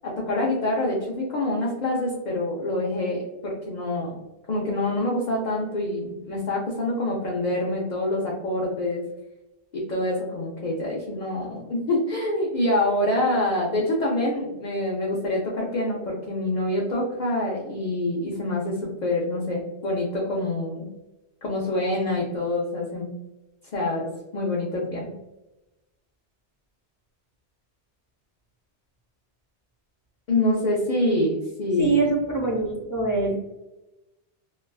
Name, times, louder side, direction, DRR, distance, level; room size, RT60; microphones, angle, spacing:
voice 1, 0.0-4.1 4.5-9.0 9.7-20.9 21.4-23.1 23.7-24.1 24.3-25.1 30.3-31.9, left 1 dB, 50° left, -3 dB, 0.6 m, -26 dB
voice 2, 31.8-33.4, right 3 dB, 20° left, -4 dB, 0.8 m, -24 dB
3.1 x 2.3 x 2.3 m, 0.99 s
omnidirectional pair, 1.2 m